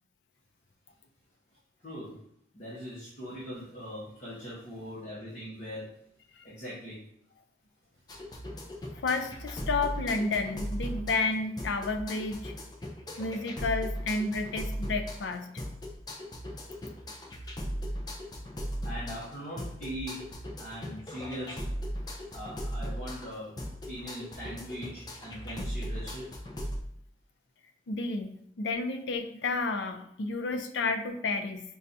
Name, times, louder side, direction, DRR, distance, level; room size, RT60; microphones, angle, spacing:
voice 1, 1.8-2.2 2.5-5.9 6.4-7.0 18.8-21.6 22.3-23.5 23.9-26.3, equal, 40° left, -8 dB, 1.0 m, -41 dB
sound 1, 8.1-26.8, equal, 20° left, 0.4 m, -38 dB
voice 2, 8.9-12.5 13.2-15.5 27.9-31.6, left 3 dB, 85° left, 6 dB, 0.4 m, -31 dB
5.3 x 2.2 x 2.6 m, 0.71 s
head